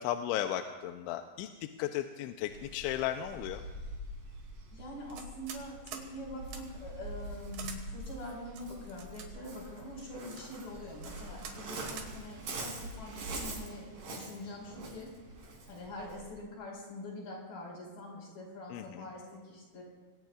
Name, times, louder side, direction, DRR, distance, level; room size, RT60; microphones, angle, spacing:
voice 1, 0.0-1.5 1.8-3.6 18.7-19.1, left 11 dB, 85° left, 6 dB, 3.0 m, -35 dB
Waves surf, 2.4-16.3, right 1 dB, 50° right, 4.5 m, -44 dB
voice 2, 4.7-15.1 15.7-19.8, left 1 dB, 50° left, -2 dB, 6.4 m, -44 dB
sound 1, 5.1-5.6 5.9-6.1 6.5-6.6 7.5-7.8 8.5-9.3 10.0-10.4 11.0-11.1 11.4-11.6 11.9-12.1, right 7 dB, 70° right, 3.7 m, -44 dB
26.0 x 21.0 x 2.4 m, 1.3 s
omnidirectional pair, 5.3 m